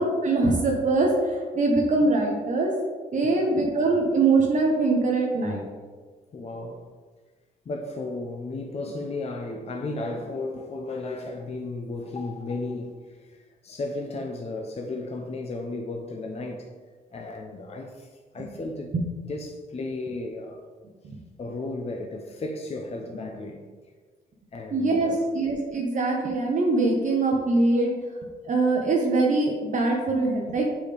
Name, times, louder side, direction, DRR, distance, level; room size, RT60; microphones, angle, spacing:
voice 1, 0.0-2.7 3.1-5.6 18.4-18.5 18.9-19.0 21.0-21.2 24.7-27.9 28.5-30.7, right 3 dB, 50° right, 1.0 m, -23 dB
voice 2, 3.2-3.7 6.3-6.8 7.7-16.7 17.1-18.1 18.3-18.9 19.3-20.6 21.4-23.6 24.5-25.3, left 2 dB, 40° left, 0.7 m, -34 dB
8.0 x 5.0 x 3.4 m
cardioid pair, 100°, 17 cm